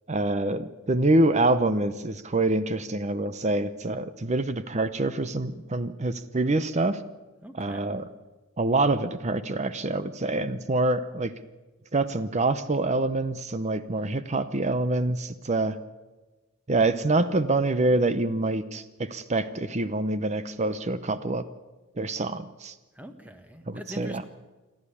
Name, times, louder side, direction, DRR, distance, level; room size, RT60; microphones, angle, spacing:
voice 1, 0.1-7.0 7.5-8.1 8.6-11.3 11.9-15.8 16.7-21.4 22.0-22.7 23.7-24.2, right 2 dB, 30° right, 12 dB, 0.7 m, -26 dB
voice 2, 7.4-7.8 23.0-24.2, equal, 5° right, 7 dB, 1.5 m, -43 dB
28.0 x 12.0 x 8.5 m, 1.2 s
head